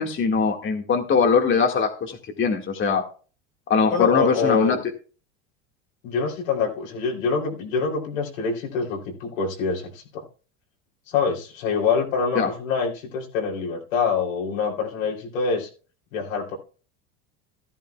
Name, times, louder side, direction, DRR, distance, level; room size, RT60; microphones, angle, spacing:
voice 1, 0.0-3.0 3.7-4.8 12.4-12.5, left 5 dB, 30° left, 2 dB, 1.9 m, -21 dB
voice 2, 3.9-4.8 6.0-10.3 11.1-15.7 16.1-16.5, left 5 dB, 70° left, 0 dB, 3.4 m, -25 dB
13.5 x 13.0 x 2.3 m, 0.39 s
hypercardioid pair, 85°, 41 cm